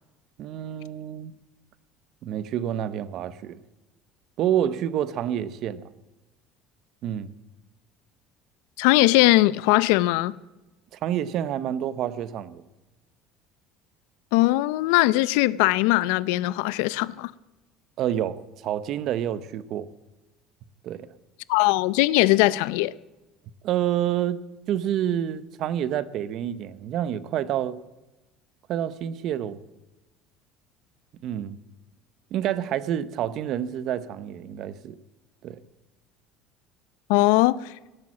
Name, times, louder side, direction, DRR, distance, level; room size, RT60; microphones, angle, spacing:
voice 1, 0.4-1.3 2.2-3.6 4.4-5.8 7.0-7.3 11.0-12.6 18.0-19.9 20.8-21.1 23.6-24.4 24.7-27.7 28.7-29.6 31.2-31.6 32.3-35.0 35.4-35.6, right 10 dB, 40° right, 0.7 m, -28 dB
voice 2, 8.8-10.3 14.3-17.3 21.5-22.9 37.1-37.7, left 18 dB, 85° left, 0.5 m, -20 dB
18.0 x 8.7 x 7.3 m
cardioid pair, 175°, 0 cm